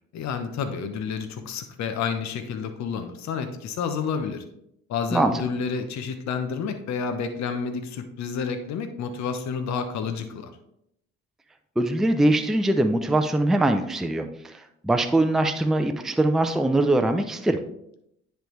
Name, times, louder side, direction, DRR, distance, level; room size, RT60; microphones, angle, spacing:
voice 1, 0.1-4.4 4.9-10.5, left 6 dB, 55° left, 7 dB, 0.9 m, -30 dB
voice 2, 11.8-14.5 14.8-17.6, right 1 dB, ahead, 6 dB, 0.5 m, -22 dB
10.0 x 3.5 x 3.2 m, 0.76 s
supercardioid pair, 65°, 33 cm